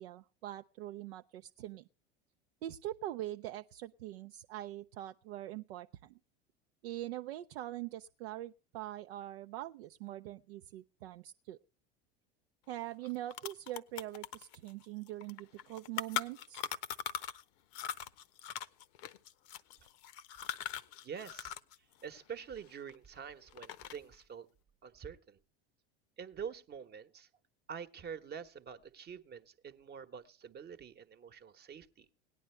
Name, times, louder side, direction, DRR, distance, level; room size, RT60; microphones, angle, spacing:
voice 1, 0.0-1.9 2.6-6.2 6.8-11.6 12.7-16.6, right 14 dB, 75° right, 0.5 m, -43 dB
sound 1, 12.7-12.8 13.0-17.4 17.7-21.8 22.0-23.2 23.5-24.1, left 10 dB, 65° left, 0.8 m, -41 dB
voice 2, 21.0-21.5 22.0-24.5 24.8-25.4 26.2-27.3 27.7-32.1, right 7 dB, 30° right, 1.0 m, -46 dB
18.0 x 10.0 x 3.2 m
hypercardioid pair, 85°, 32 cm